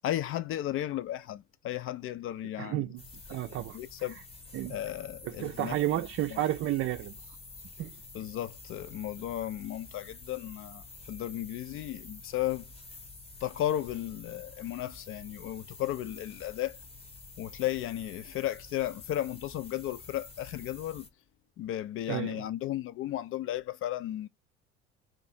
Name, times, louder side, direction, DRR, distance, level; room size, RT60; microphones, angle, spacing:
voice 1, 0.0-2.8 3.3-3.4 3.7-4.2 4.7-5.8 6.3-6.4 8.1-12.6 13.4-16.8 17.4-21.1 21.6-24.3, left 13 dB, 45° left, 0.4 m, -34 dB
voice 2, 2.6-3.0 3.3-3.8 4.5-4.8 5.2-7.4 7.8-8.0 22.1-22.4, right 13 dB, 45° right, 0.5 m, -32 dB
sound 1, 3.0-21.1, left 3 dB, 20° left, 0.9 m, -49 dB
2.7 x 2.5 x 4.1 m
hypercardioid pair, 65°, 32 cm